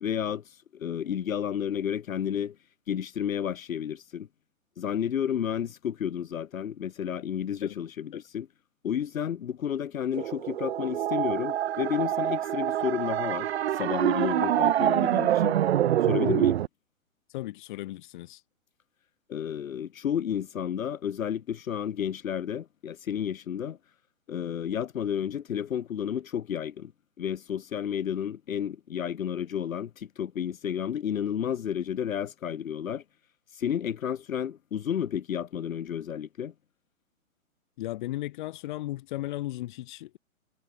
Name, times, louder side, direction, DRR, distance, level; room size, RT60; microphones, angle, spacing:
voice 1, 0.0-2.6 2.9-4.3 4.8-8.5 8.8-15.6 16.0-16.6 19.3-23.8 24.3-26.9 27.2-33.0 33.5-36.5, left 9 dB, 70° left, 1.3 m, -31 dB
sound 1, 10.1-16.7, right 12 dB, 50° right, 0.7 m, -26 dB
voice 2, 17.3-18.4 37.8-40.2, left 16 dB, 35° left, 1.2 m, -35 dB
hypercardioid pair, 145°, 42 cm